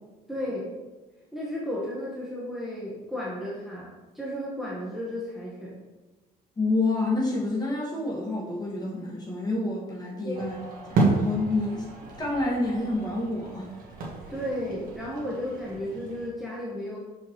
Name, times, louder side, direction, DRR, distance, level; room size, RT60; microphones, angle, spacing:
voice 1, 0.3-0.7 1.3-5.7 10.2-10.4 14.3-17.0, left 1 dB, ahead, -7 dB, 1.4 m, -33 dB
voice 2, 6.6-11.9 12.2-13.7, left 2 dB, 25° left, -5 dB, 2.0 m, -28 dB
sound 1, 10.3-16.3, right 3 dB, 55° right, 1.5 m, -31 dB
6.4 x 5.4 x 3.1 m, 1.2 s
cardioid pair, 110°, 17 cm